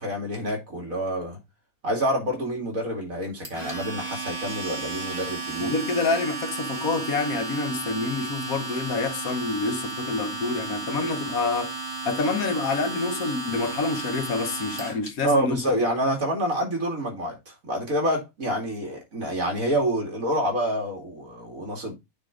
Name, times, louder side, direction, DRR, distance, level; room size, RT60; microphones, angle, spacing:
voice 1, 0.0-1.4 1.8-5.7 15.2-21.9, right 1 dB, 70° right, 3.2 m, -27 dB
Domestic sounds home sounds, 3.4-15.1, right 3 dB, 45° right, 3.1 m, -34 dB
voice 2, 5.6-11.8 12.0-15.8, left 3 dB, 80° left, 1.5 m, -27 dB
8.9 x 3.7 x 4.8 m
omnidirectional pair, 1.5 m